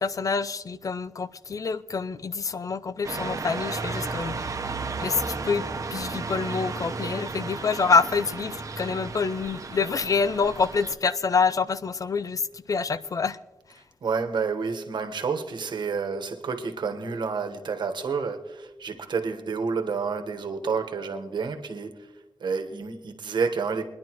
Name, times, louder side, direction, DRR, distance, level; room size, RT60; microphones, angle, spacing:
voice 1, 0.0-4.4 5.0-13.4, left 5 dB, 50° left, 0.5 m, -26 dB
sound 1, 3.0-10.9, right 4 dB, 45° right, 0.9 m, -33 dB
voice 2, 14.0-22.1 22.4-23.8, right 5 dB, 80° right, 1.2 m, -29 dB
23.5 x 10.5 x 3.0 m
wide cardioid pair, 95°, 8 cm